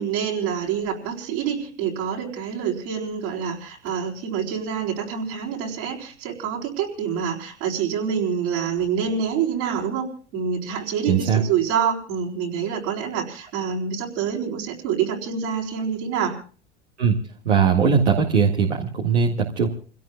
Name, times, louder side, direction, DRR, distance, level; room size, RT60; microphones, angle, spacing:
voice 1, 0.0-16.4, right 7 dB, 65° right, 0 dB, 4.3 m, -26 dB
voice 2, 11.1-11.4 17.0-17.2 17.4-19.7, right 6 dB, 85° right, -1 dB, 2.0 m, -20 dB
30.0 x 17.0 x 2.3 m, 0.42 s
hypercardioid pair, 75°, 34 cm